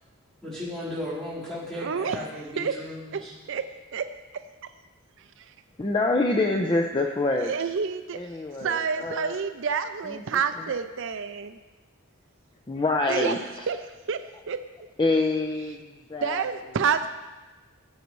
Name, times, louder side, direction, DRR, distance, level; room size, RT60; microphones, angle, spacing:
voice 1, 0.4-3.4, left 1 dB, ahead, -10 dB, 4.1 m, -35 dB
voice 2, 1.8-2.2 2.6-2.7 3.1-3.2 3.5-3.7 3.9-4.7 5.2-5.5 7.4-8.2 8.6-11.6 13.1-14.6 16.2-17.1, right 6 dB, 60° right, 9 dB, 0.4 m, -29 dB
voice 3, 5.8-7.5 8.1-9.4 10.1-10.2 12.7-13.4 15.0-16.5, left 2 dB, 25° left, 2 dB, 0.6 m, -26 dB
18.0 x 8.1 x 3.1 m, 1.2 s
head